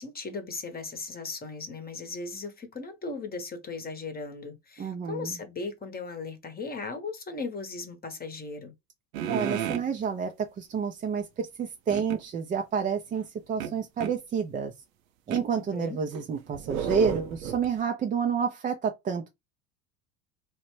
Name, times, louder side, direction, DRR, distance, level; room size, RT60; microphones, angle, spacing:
voice 1, 0.0-8.7 15.5-16.0, left 4 dB, 25° left, 0.9 m, -37 dB
voice 2, 4.8-5.4 9.3-14.7 15.3-19.3, right 6 dB, 20° right, 0.4 m, -29 dB
sound 1, 9.1-9.9 11.9-12.2 13.6-14.2 15.3-15.5 16.1-17.8, right 9 dB, 80° right, 0.6 m, -32 dB
2.8 x 2.1 x 3.0 m
hypercardioid pair, 80°, 40 cm